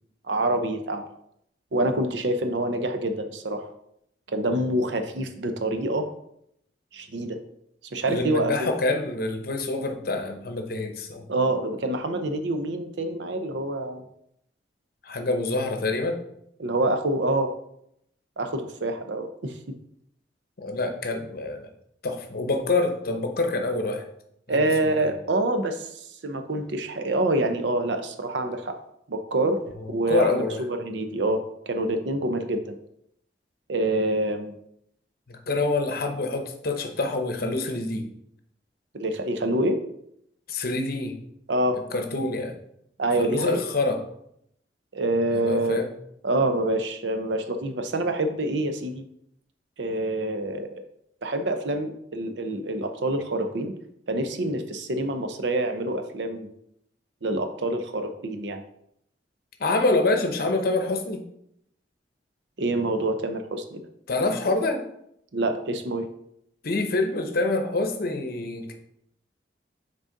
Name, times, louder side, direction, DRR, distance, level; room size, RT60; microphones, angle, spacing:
voice 1, 0.3-1.1 1.7-3.7 4.3-6.1 6.9-7.4 7.9-8.7 11.3-14.0 16.6-17.5 18.4-19.6 24.5-28.8 29.1-29.6 29.9-32.8 33.7-34.6 38.9-39.8 41.5-41.8 43.0-43.6 44.9-45.8 46.2-49.0 49.8-50.8 51.2-53.7 54.1-56.5 57.2-58.6 62.6-63.8 65.3-66.1, right 1 dB, 80° right, 8 dB, 0.7 m, -26 dB
voice 2, 8.1-11.2 15.0-16.2 20.6-21.7 22.0-24.1 24.5-24.6 30.1-30.6 35.3-38.1 40.5-41.2 41.9-42.5 43.2-44.0 45.3-45.9 59.6-61.2 64.1-64.8 66.6-68.7, left 2 dB, 55° left, 5 dB, 0.8 m, -26 dB
6.3 x 4.0 x 3.8 m, 0.75 s
head